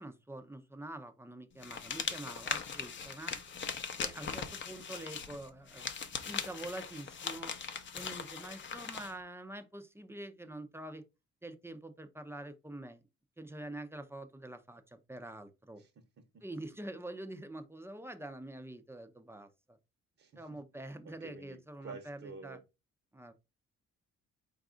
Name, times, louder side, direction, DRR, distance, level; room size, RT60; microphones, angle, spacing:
voice 1, 0.0-3.4 4.0-5.9 6.3-7.5 7.9-11.0 11.4-13.0 13.4-15.8 16.4-19.8 20.4-22.6 23.1-23.3, right 1 dB, 10° right, 0.5 m, -46 dB
sound 1, 1.6-9.1, left 6 dB, 40° left, 0.6 m, -40 dB
voice 2, 20.2-22.6, right 4 dB, 50° right, 0.9 m, -51 dB
4.0 x 2.5 x 3.7 m
cardioid pair, 90°, 30 cm